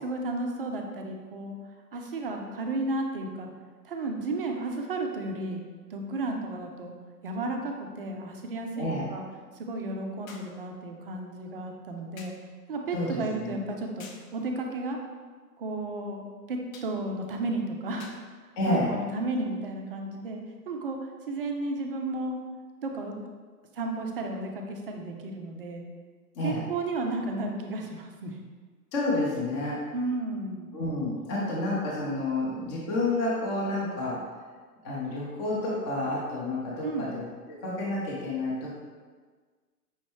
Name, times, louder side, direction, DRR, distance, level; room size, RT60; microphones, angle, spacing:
voice 1, 0.0-1.6 1.9-3.5 3.8-5.6 5.9-6.9 7.2-9.2 9.6-12.3 12.7-14.1 14.3-15.0 15.6-18.1 18.7-20.4 20.7-22.3 22.8-23.3 23.7-25.9 26.4-28.4 29.9-30.7 36.8-37.1, right 2 dB, 40° right, 2 dB, 0.4 m, -33 dB
sound 1, 10.3-10.6 12.2-12.5 14.0-14.3 16.7-17.0 18.0-18.3 19.3-19.5, left 4 dB, 55° left, 0.8 m, -48 dB
voice 2, 12.9-13.6 18.6-18.9 26.4-26.6 28.9-29.8 30.7-34.2 34.8-38.7, left 2 dB, 15° left, -5 dB, 0.6 m, -30 dB
5.5 x 2.9 x 3.0 m, 1.5 s
figure-of-eight pair, 125°, 48 cm